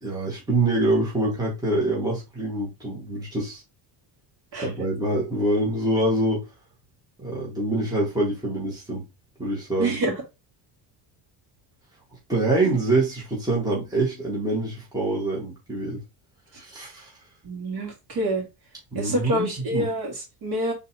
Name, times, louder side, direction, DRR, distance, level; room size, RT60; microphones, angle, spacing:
voice 1, 0.0-3.6 4.5-6.5 7.2-9.0 9.4-9.9 12.3-16.0 16.6-17.1 18.9-19.9, right 2 dB, 10° right, 1.8 m, -25 dB
voice 2, 9.8-10.2 17.4-18.4 18.9-20.7, right 1 dB, 50° right, 2.7 m, -27 dB
4.0 x 3.9 x 2.9 m
cardioid pair, 130°, 47 cm